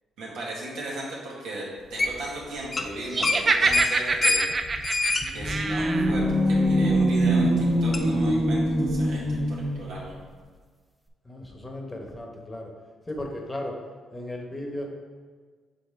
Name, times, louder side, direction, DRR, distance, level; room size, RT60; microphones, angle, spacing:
voice 1, 0.2-4.5 5.3-10.1, right 1 dB, 90° right, -5 dB, 1.7 m, -36 dB
squeaky valve, 2.0-2.4 2.6-2.9 3.2-6.6 7.0-7.1 7.9-8.0, left 3 dB, 35° left, 0.5 m, -26 dB
Laughter, 3.1-6.1, right 3 dB, 35° right, 0.4 m, -25 dB
sound 1, 5.2-10.0, equal, 10° right, 0.7 m, -23 dB
voice 2, 11.2-12.7 13.1-13.8 14.1-14.9, left 1 dB, 20° left, 1 dB, 1.0 m, -35 dB
6.7 x 4.0 x 3.5 m, 1.5 s
cardioid pair, 90°, 0 cm